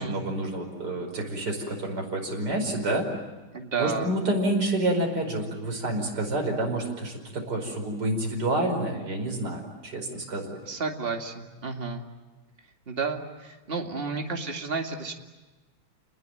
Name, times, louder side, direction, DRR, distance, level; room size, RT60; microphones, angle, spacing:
voice 1, 0.0-3.1 3.8-10.6, right 1 dB, 50° right, 1 dB, 5.7 m, -28 dB
voice 2, 3.5-4.1 10.7-12.0 12.9-15.1, right 4 dB, 25° right, 3 dB, 2.4 m, -31 dB
29.5 x 20.5 x 9.3 m, 1.2 s
omnidirectional pair, 2.3 m